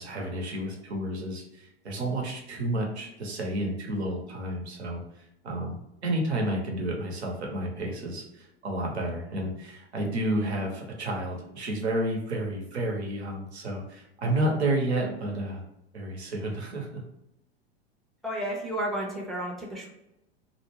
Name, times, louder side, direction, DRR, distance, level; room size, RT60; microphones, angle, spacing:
voice 1, 0.0-5.0 5.4-15.6 15.9-17.0, right 1 dB, 80° right, 0 dB, 0.9 m, -31 dB
voice 2, 18.2-19.9, right 1 dB, ahead, -3 dB, 0.5 m, -32 dB
2.5 x 2.1 x 3.0 m, 0.87 s
figure-of-eight pair, 90°, 32 cm